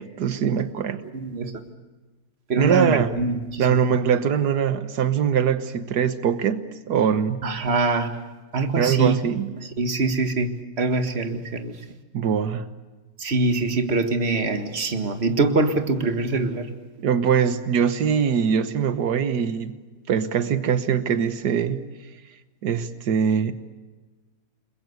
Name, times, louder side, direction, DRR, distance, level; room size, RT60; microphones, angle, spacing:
voice 1, 0.0-1.0 2.6-3.1 3.6-7.4 8.8-9.5 12.1-12.7 17.0-19.8 20.1-21.8 22.6-23.5, right 7 dB, 90° right, 11 dB, 1.7 m, -22 dB
voice 2, 1.1-1.5 2.5-3.8 7.4-8.1 8.5-9.2 9.6-10.5 10.8-11.8 13.2-16.7, right 3 dB, 40° right, 7 dB, 2.0 m, -24 dB
29.5 x 21.0 x 8.1 m, 1.2 s
omnidirectional pair, 1.7 m